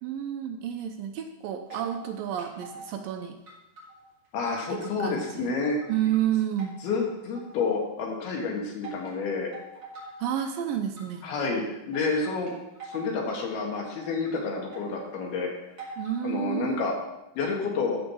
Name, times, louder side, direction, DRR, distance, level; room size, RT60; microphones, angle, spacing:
voice 1, 0.0-3.4 4.7-5.5 5.9-6.8 10.2-11.3 16.0-16.9, right 10 dB, 75° right, 5 dB, 2.3 m, -30 dB
sound 1, 1.7-2.1 2.4-3.1 3.5-5.1 5.5-6.2 6.6-7.8 8.8-9.1 9.5-10.5 11.0-11.3 11.9-13.4 13.7-15.1 15.8-16.2, right 2 dB, 30° right, 3.5 m, -45 dB
voice 2, 4.3-5.8 6.8-9.5 11.2-12.5 12.8-15.5 16.2-16.9 17.4-18.0, left 4 dB, 80° left, 0 dB, 3.7 m, -29 dB
13.5 x 5.1 x 6.2 m, 0.93 s
omnidirectional pair, 4.5 m